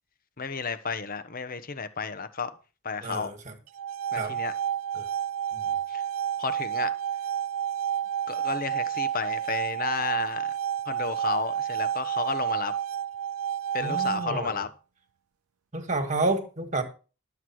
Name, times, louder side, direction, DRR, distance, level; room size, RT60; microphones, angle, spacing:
voice 1, 0.4-2.5 2.8-3.3 4.1-4.5 5.9-6.0 6.4-6.9 8.3-10.5 10.9-12.7 13.7-14.7, left 5 dB, 40° left, 1.0 m, -32 dB
voice 2, 3.0-3.4 4.2-4.3 5.0-5.1 5.5-5.6 13.8-14.6 15.7-16.8, right 2 dB, 35° right, 1.8 m, -29 dB
sound 1, 3.7-14.7, right 9 dB, 70° right, 0.4 m, -30 dB
11.5 x 8.0 x 4.7 m
head